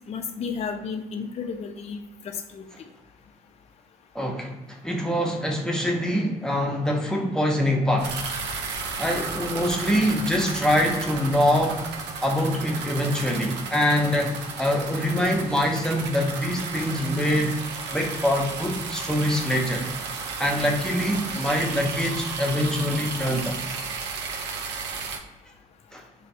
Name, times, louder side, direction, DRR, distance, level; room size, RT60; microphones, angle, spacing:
voice 1, 0.1-2.6, left 5 dB, 35° left, 5 dB, 0.4 m, -33 dB
voice 2, 4.1-8.2 9.0-11.8 12.2-17.6 17.9-19.9 20.4-23.5 25.9-26.0, equal, 5° left, 0 dB, 0.7 m, -24 dB
sound 1, 8.0-25.2, right 4 dB, 65° right, 0.5 m, -34 dB
2.4 x 2.3 x 4.0 m, 1.0 s
hypercardioid pair, 50°, 19 cm